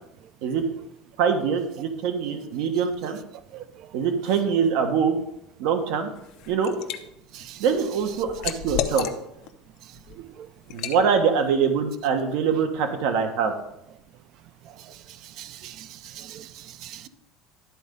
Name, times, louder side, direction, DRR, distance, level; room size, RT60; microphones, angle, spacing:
voice 1, 1.2-3.2 3.9-5.2 5.6-6.1 6.5-6.7 7.6-9.1 10.7-13.5, right 6 dB, 65° right, 5 dB, 1.3 m, -23 dB
Liquid, 6.2-7.0 7.4-9.5 9.9-10.1 10.7-11.0, left 11 dB, 50° left, 0.7 m, -31 dB
voice 2, 7.3-7.6 10.1-10.5 14.7-17.1, right 12 dB, 45° right, 14 dB, 0.5 m, -43 dB
12.0 x 4.4 x 5.3 m, 0.80 s
cardioid pair, 165°, 0 cm